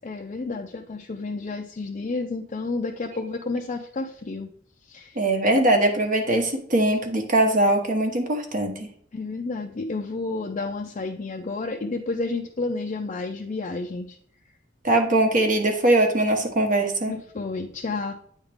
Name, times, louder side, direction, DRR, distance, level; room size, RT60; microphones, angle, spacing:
voice 1, 0.0-4.5 4.8-5.2 9.1-14.2 17.1-18.1, left 3 dB, 40° left, 2 dB, 0.5 m, -31 dB
voice 2, 5.2-8.9 14.8-17.1, right 1 dB, 45° right, 3 dB, 1.0 m, -21 dB
8.8 x 3.6 x 3.4 m, 0.63 s
head